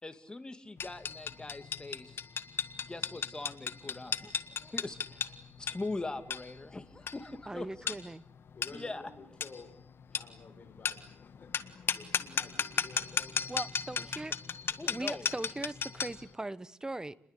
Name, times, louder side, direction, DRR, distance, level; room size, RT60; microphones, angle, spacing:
voice 1, 0.0-2.2 2.9-7.9 8.7-9.1 14.8-15.3, left 2 dB, 20° left, 9 dB, 2.5 m, -42 dB
sound 1, 0.8-16.3, left 6 dB, 55° left, 1.7 m, -36 dB
voice 2, 7.5-8.2 13.5-14.3 14.9-17.2, right 2 dB, 15° right, 18 dB, 1.1 m, -39 dB
voice 3, 8.5-9.7 10.1-11.5 11.9-13.6 14.0-14.2, left 4 dB, 40° left, 2 dB, 5.5 m, -52 dB
29.5 x 21.5 x 8.5 m, 0.65 s
cardioid pair, 95°, 5 cm